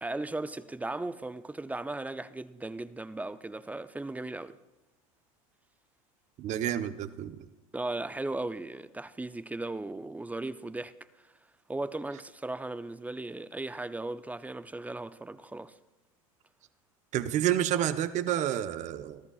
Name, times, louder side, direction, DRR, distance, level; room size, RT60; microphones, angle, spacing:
voice 1, 0.0-4.6 7.7-10.9 11.7-15.7, right 2 dB, 10° right, 0.6 m, -37 dB
voice 2, 6.4-7.4 17.1-19.2, right 11 dB, 40° right, 0.9 m, -29 dB
27.0 x 13.5 x 2.4 m
hypercardioid pair, 90°, 18 cm